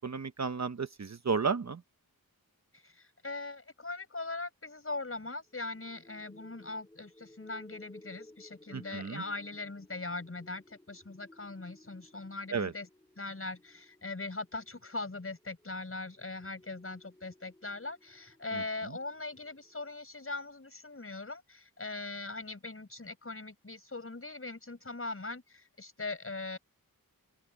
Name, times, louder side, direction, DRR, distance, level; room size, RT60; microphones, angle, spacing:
voice 1, 0.0-1.8 8.7-9.2 12.5-12.7 18.5-18.6, right 5 dB, 50° right, 0.9 m, -33 dB
voice 2, 2.7-12.9 13.2-26.6, left 3 dB, 40° left, 5.4 m, -41 dB
sound 1, 5.6-19.9, left 1 dB, 10° left, 5.2 m, -58 dB
open air
wide cardioid pair, 90°, 36 cm